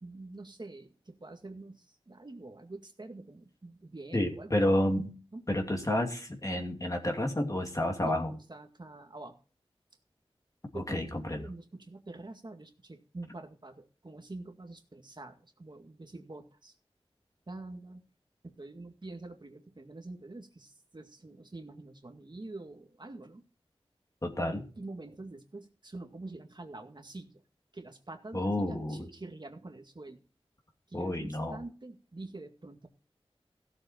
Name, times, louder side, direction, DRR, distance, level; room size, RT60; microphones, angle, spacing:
voice 1, 0.0-4.8 5.3-5.4 8.0-9.4 10.7-11.1 11.4-16.8 17.5-18.0 18.4-23.4 24.4-27.4 27.7-30.2 30.9-32.9, right 2 dB, 45° right, 4 dB, 2.0 m, -46 dB
voice 2, 4.1-5.1 5.5-8.3 10.7-11.4 24.2-24.7 28.3-29.1 30.9-31.6, left 1 dB, 30° left, 3 dB, 2.8 m, -30 dB
16.0 x 7.2 x 4.4 m, 0.36 s
wide cardioid pair, 55°, 11 cm